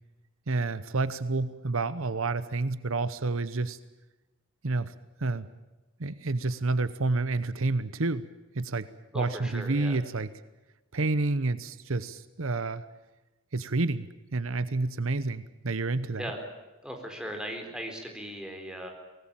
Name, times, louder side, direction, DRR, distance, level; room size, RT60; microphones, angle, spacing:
voice 1, 0.5-3.8 4.6-4.9 5.2-5.5 6.0-8.2 8.5-8.9 9.1-10.3 10.9-12.8 13.5-14.1 14.3-16.3, right 3 dB, 70° right, 15 dB, 0.9 m, -29 dB
voice 2, 9.1-10.0 16.2-16.4 16.8-18.9, equal, 5° right, 3 dB, 4.3 m, -38 dB
24.0 x 19.0 x 9.0 m, 1.1 s
head